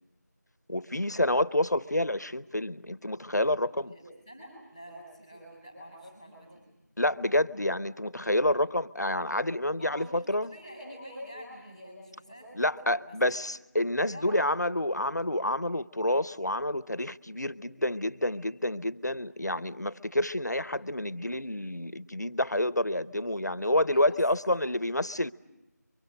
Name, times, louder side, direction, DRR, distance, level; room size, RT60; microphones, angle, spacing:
voice 1, 0.7-3.9 7.0-10.6 12.5-25.3, left 1 dB, 70° left, 0.9 m, -28 dB
voice 2, 3.7-6.6 9.8-13.4 14.1-14.5 23.9-24.0, equal, 10° right, 6.4 m, -47 dB
28.0 x 24.0 x 6.6 m
figure-of-eight pair, 175°, 10 cm